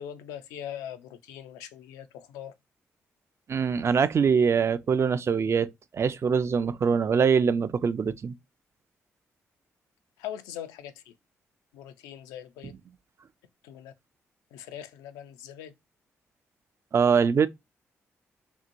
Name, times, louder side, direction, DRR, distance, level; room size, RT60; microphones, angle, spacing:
voice 1, 0.0-2.5 10.2-11.1 11.7-12.7 13.6-13.9 14.5-15.7, left 10 dB, 90° left, 0.4 m, -41 dB
voice 2, 3.5-8.3 16.9-17.5, right 6 dB, 50° right, 0.4 m, -23 dB
2.8 x 2.7 x 2.5 m
supercardioid pair, 50°, 6 cm